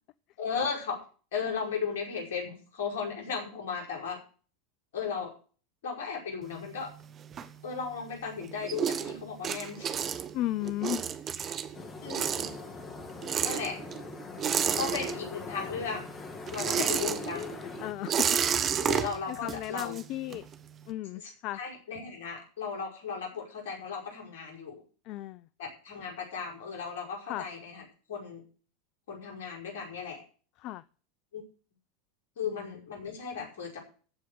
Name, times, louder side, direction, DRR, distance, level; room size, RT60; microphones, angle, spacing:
voice 1, 0.4-1.0 1.3-4.2 4.9-5.3 5.8-6.9 7.6-9.9 12.0-12.5 13.4-13.8 14.8-16.0 16.5-17.4 18.8-20.0 21.1-24.8 25.6-27.8 28.1-28.4 29.1-30.2 31.3-31.4 32.4-33.8, left 5 dB, 70° left, 1 dB, 5.3 m, -36 dB
sound 1, 6.4-8.0 8.4-15.6 15.9-20.6, right 8 dB, 35° right, 1.3 m, -31 dB
voice 2, 10.3-11.0 14.3-15.1 16.6-16.9 17.3-18.3 19.3-20.5 20.9-21.6 25.0-25.5 27.3-27.5 30.6-30.8 32.4-32.7, left 14 dB, 50° left, 18 dB, 0.5 m, -36 dB
sound 2, 11.7-17.9, left 4 dB, 30° left, 2.3 m, -42 dB
15.0 x 5.0 x 9.3 m, 0.41 s
hypercardioid pair, 90°, 0 cm